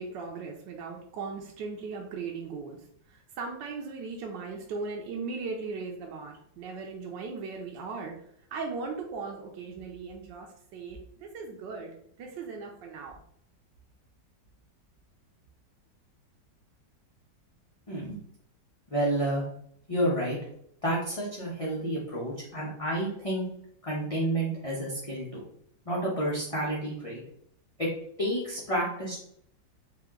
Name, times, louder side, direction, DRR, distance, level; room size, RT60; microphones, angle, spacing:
voice 1, 0.0-8.1 8.5-11.9 12.2-13.2, right 4 dB, 80° right, 1 dB, 1.3 m, -38 dB
voice 2, 17.9-18.2 18.9-19.4 19.9-20.4 20.8-23.5 23.8-25.4 25.9-27.2 27.8-27.9 28.2-29.2, right 1 dB, 30° left, -6 dB, 0.7 m, -30 dB
4.1 x 2.9 x 3.6 m, 0.68 s
omnidirectional pair, 2.0 m